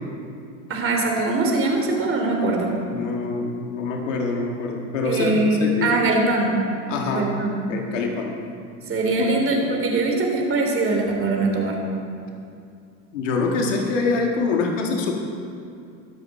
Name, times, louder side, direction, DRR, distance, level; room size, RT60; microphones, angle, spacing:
voice 1, 0.7-2.7 5.0-6.6 7.1-7.6 8.9-11.8, right 2 dB, 35° right, 1 dB, 3.2 m, -22 dB
voice 2, 2.9-6.0 6.9-7.3 7.7-8.3 9.2-9.3 13.1-15.1, left 3 dB, 90° left, 1 dB, 1.7 m, -25 dB
21.0 x 7.5 x 4.2 m, 2.4 s
supercardioid pair, 95°, 37 cm